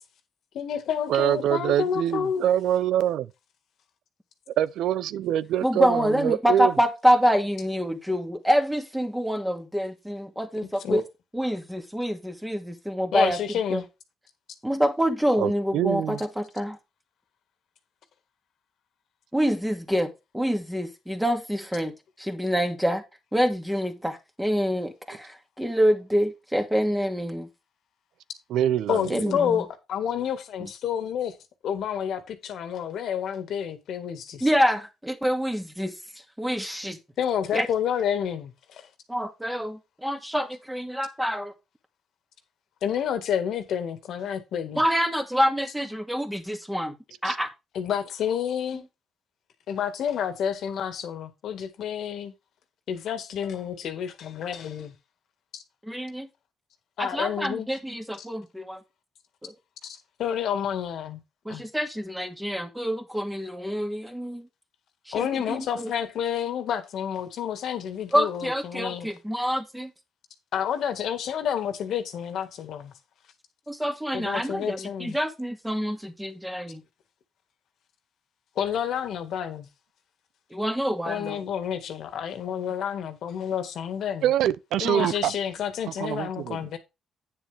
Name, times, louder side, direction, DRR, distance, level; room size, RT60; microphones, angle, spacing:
voice 1, 0.5-2.4 10.8-11.0 13.1-13.8 28.9-31.4 31.6-34.5 37.2-38.9 42.8-44.8 47.7-48.8 49.7-52.3 52.9-54.9 55.5-55.6 57.0-57.7 58.2-58.3 59.8-61.2 61.5-61.7 65.1-69.1 70.5-72.9 74.1-75.2 78.6-79.7 81.1-84.3 84.8-86.8, left 8 dB, 70° left, 1.9 m, -29 dB
voice 2, 1.1-3.3 4.6-6.7 15.4-16.2 28.5-29.4 47.2-47.4 84.2-85.3 86.0-86.6, right 11 dB, 80° right, 0.6 m, -25 dB
voice 3, 5.6-11.0 11.3-13.4 13.7-13.8 14.6-16.8 19.3-23.0 23.3-27.5 29.1-29.6 30.6-30.7 34.4-35.9 36.4-37.0 37.5-37.7 39.1-41.5 44.8-47.0 47.2-47.5 55.8-56.3 57.0-58.8 59.4-59.5 61.5-64.5 65.1-65.9 68.1-69.9 73.7-76.8 80.5-81.4 85.0-85.1, equal, 5° right, 2.2 m, -26 dB
9.4 x 7.1 x 3.5 m
cardioid pair, 90°, 0 cm